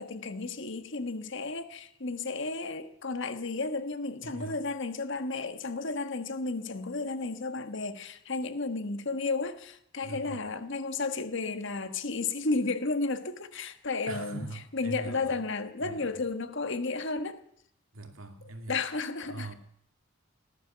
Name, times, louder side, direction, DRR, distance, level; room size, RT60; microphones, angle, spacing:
voice 1, 0.0-14.4 14.7-17.4 18.7-19.5, left 3 dB, 60° left, 1.4 m, -33 dB
voice 2, 4.2-4.6 10.0-10.5 14.1-15.4 15.8-16.2 17.9-18.8 19.2-19.5, right 2 dB, 80° right, 2.3 m, -42 dB
18.0 x 11.0 x 6.9 m
head